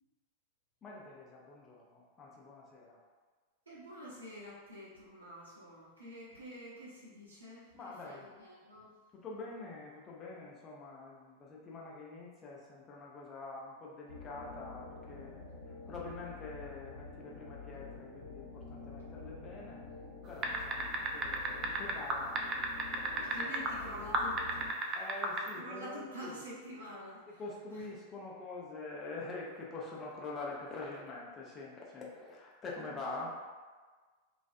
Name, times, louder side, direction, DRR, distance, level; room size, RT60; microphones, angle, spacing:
voice 1, 0.8-3.0 7.7-8.3 9.1-19.8 20.3-22.4 22.9-24.0 24.9-26.4 27.3-33.4, left 3 dB, 25° left, -4 dB, 0.6 m, -46 dB
voice 2, 3.7-7.7 8.0-8.9 23.1-25.0 25.6-27.4 27.7-27.8 32.8-33.2, equal, 75° right, -7 dB, 0.8 m, -48 dB
sound 1, 14.1-24.7, left 3 dB, 65° left, 0.9 m, -48 dB
sound 2, 20.4-23.7 24.1-25.5, right 3 dB, 30° right, 0.3 m, -32 dB
2.4 x 2.1 x 2.5 m, 1.4 s
figure-of-eight pair, 90°, 0 cm